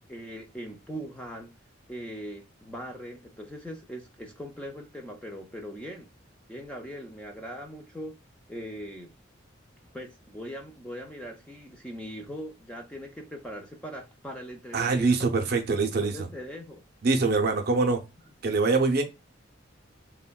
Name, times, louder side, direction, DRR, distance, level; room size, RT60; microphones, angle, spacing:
voice 1, 0.1-1.5 1.9-6.1 6.5-8.2 8.5-9.1 9.9-15.3 15.8-16.8, equal, 5° left, 0.3 m, -40 dB
voice 2, 14.7-16.3 17.0-18.0 18.4-19.0, right 3 dB, 55° right, 0.5 m, -24 dB
3.4 x 2.1 x 2.2 m
head